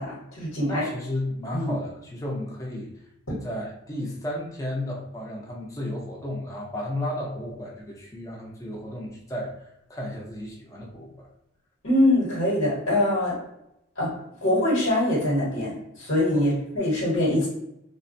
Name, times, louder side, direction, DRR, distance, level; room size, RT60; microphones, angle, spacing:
voice 1, 0.0-0.8 1.5-1.7 3.3-3.4 11.8-13.4 14.0-14.1 14.4-17.5, left 1 dB, 75° left, -7 dB, 1.1 m, -23 dB
voice 2, 0.6-2.9 3.3-11.1 16.3-16.5, left 1 dB, 15° left, -3 dB, 0.6 m, -33 dB
3.5 x 2.1 x 2.6 m, 0.82 s
head